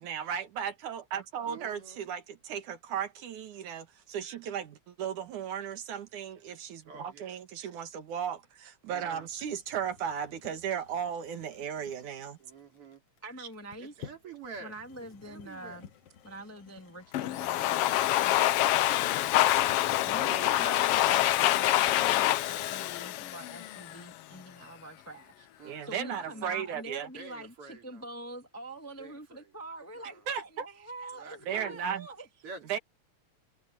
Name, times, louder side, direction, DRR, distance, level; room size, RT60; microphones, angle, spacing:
voice 1, 0.0-12.4 13.4-13.5 20.2-20.5 25.6-27.1 30.3-30.4 31.5-32.1 32.7-32.8, right 8 dB, 80° right, 3.1 m, -36 dB
voice 2, 1.5-2.0 6.9-7.4 8.9-9.3 12.4-13.0 13.8-14.7 15.2-15.8 25.6-26.5 27.1-28.0 29.0-29.5 30.0-30.2 31.1-31.8 32.4-32.8, right 4 dB, 50° right, 4.0 m, -48 dB
sound 1, 9.0-22.3, left 8 dB, 55° left, 2.3 m, -54 dB
voice 3, 13.2-13.9 14.6-15.9 16.2-19.6 20.0-25.5 25.8-32.3, right 2 dB, 10° left, 1.1 m, -45 dB
Domestic sounds home sounds, 17.1-24.0, left 15 dB, 90° left, 1.3 m, -26 dB
omnidirectional pair, 3.4 m